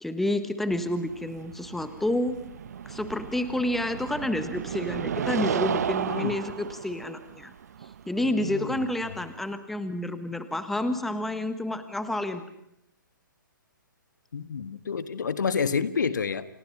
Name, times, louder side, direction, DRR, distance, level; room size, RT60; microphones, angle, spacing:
voice 1, 0.0-2.4 2.8-7.5 8.1-12.4, left 1 dB, ahead, 10 dB, 1.3 m, -29 dB
sound 1, 0.7-9.5, right 8 dB, 50° right, 1.0 m, -34 dB
voice 2, 8.2-9.2 14.3-16.5, left 6 dB, 60° left, 12 dB, 1.6 m, -29 dB
30.0 x 29.0 x 5.7 m, 0.76 s
figure-of-eight pair, 130°, 11 cm